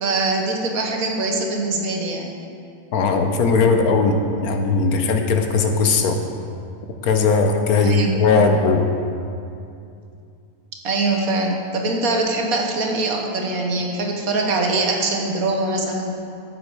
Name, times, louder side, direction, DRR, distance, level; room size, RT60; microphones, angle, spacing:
voice 1, 0.0-2.3 7.8-8.1 10.8-16.2, right 2 dB, 75° right, 2 dB, 1.6 m, -23 dB
voice 2, 2.9-6.2 7.0-8.9, left 4 dB, 80° left, 5 dB, 1.4 m, -18 dB
12.5 x 8.4 x 4.9 m, 2.5 s
omnidirectional pair, 1.5 m